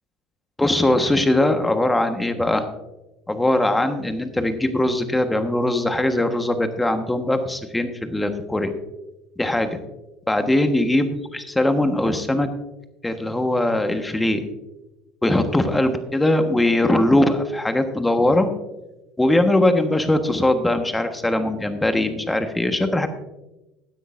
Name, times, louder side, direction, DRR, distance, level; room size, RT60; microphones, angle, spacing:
voice 1, 0.6-2.7 3.3-8.7 9.4-9.8 10.3-12.5 13.0-14.5 15.2-18.5 19.2-23.1, left 1 dB, 10° left, 7 dB, 1.3 m, -21 dB
15.5 x 9.9 x 2.6 m, 1.0 s
hypercardioid pair, 85°, 0 cm